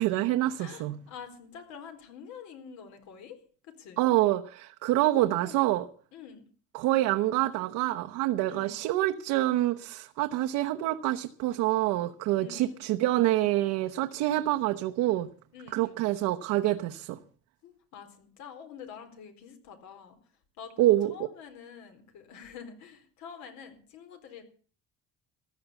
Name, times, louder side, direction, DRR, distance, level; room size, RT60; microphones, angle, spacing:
voice 1, 0.0-1.0 4.0-5.9 6.7-15.3 15.7-17.2 20.8-21.3, right 15 dB, 80° right, 1.0 m, -26 dB
voice 2, 0.6-3.4 3.6-4.1 5.1-5.7 6.1-6.5 8.5-8.8 12.4-12.9 15.5-16.0 17.6-20.2 20.6-24.4, left 7 dB, 70° left, 4.2 m, -47 dB
14.5 x 10.5 x 8.2 m
cardioid pair, 125°, 29 cm